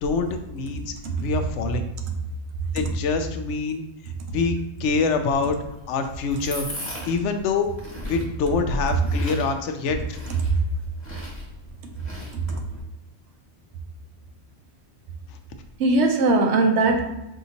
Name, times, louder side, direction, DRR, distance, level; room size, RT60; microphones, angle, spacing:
voice 1, 0.0-0.9 1.2-1.9 2.7-3.8 4.3-5.6 5.9-6.7 7.1-7.7 8.1-10.2, left 4 dB, 85° left, 7 dB, 0.9 m, -25 dB
sound 1, 5.3-12.8, left 1 dB, 15° left, 1.4 m, -39 dB
voice 2, 15.8-17.0, right 3 dB, 80° right, 3 dB, 1.0 m, -20 dB
5.6 x 2.7 x 2.8 m, 0.91 s
omnidirectional pair, 1.2 m